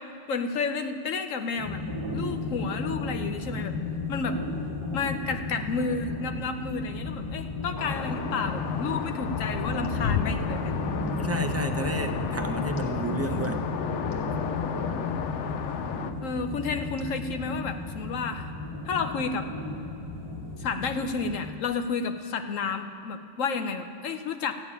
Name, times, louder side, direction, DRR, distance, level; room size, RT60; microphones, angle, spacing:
voice 1, 0.3-1.8 2.1-3.8 4.1-4.4 4.9-10.7 11.2-11.3 16.2-18.5 18.9-19.5 20.6-24.5, left 4 dB, 85° left, 7 dB, 1.3 m, -31 dB
sound 1, 1.6-21.5, left 3 dB, 25° left, 1.4 m, -34 dB
sound 2, 7.8-16.1, left 7 dB, 70° left, 1.0 m, -32 dB
voice 2, 11.2-13.6, right 1 dB, 15° right, 5 dB, 0.5 m, -30 dB
14.0 x 7.1 x 9.8 m, 2.6 s
omnidirectional pair, 1.3 m